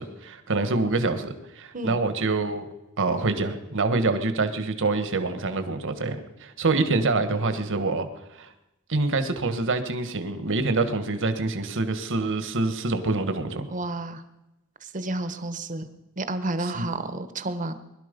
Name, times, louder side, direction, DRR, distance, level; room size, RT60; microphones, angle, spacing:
voice 1, 0.0-2.7 3.0-8.1 8.3-8.5 8.9-13.7 16.6-16.8, right 3 dB, 60° right, 9 dB, 1.5 m, -26 dB
voice 2, 13.7-14.2 14.8-15.8 16.2-17.7, right 2 dB, 35° right, 10 dB, 1.2 m, -30 dB
21.5 x 12.0 x 5.3 m, 0.95 s
head